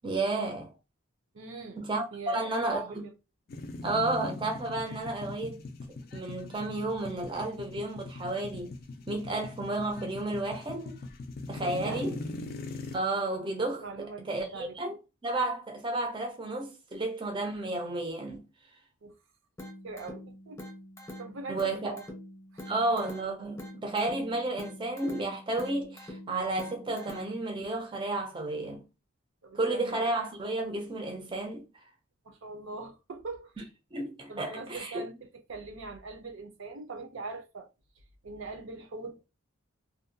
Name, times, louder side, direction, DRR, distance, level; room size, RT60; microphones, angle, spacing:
voice 1, 0.0-0.7 1.8-3.1 3.8-5.6 6.1-8.8 9.1-11.0 11.5-12.2 12.9-15.0 15.2-18.4 21.5-22.0 22.7-28.9 29.5-31.7 33.6-33.7 33.9-35.0, right 2 dB, 25° right, 0.5 m, -32 dB
voice 2, 1.3-1.9 2.1-3.1 11.6-12.1 13.8-14.8 19.0-19.2 19.8-20.6 21.2-22.0 22.5-22.6 29.4-30.0 32.2-33.5 34.3-37.7 38.2-39.3, right 3 dB, 70° right, 0.5 m, -41 dB
sound 1, 3.5-13.0, left 2 dB, 45° left, 0.3 m, -41 dB
sound 2, 19.6-27.6, left 1 dB, 15° left, 0.7 m, -45 dB
2.5 x 2.2 x 2.6 m
head